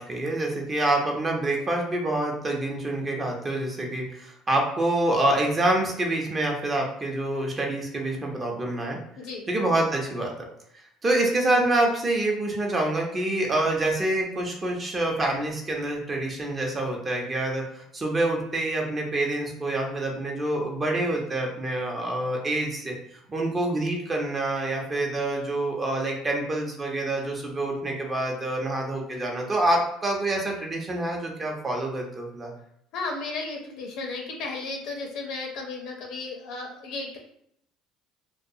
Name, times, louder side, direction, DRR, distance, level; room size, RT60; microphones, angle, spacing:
voice 1, 0.0-9.0 9.5-10.3 11.0-23.0 23.3-32.5, right 1 dB, 25° right, 0 dB, 0.7 m, -26 dB
voice 2, 32.9-37.2, left 3 dB, 70° left, 1 dB, 0.6 m, -34 dB
2.3 x 2.3 x 2.7 m, 0.72 s
supercardioid pair, 100°, 0 cm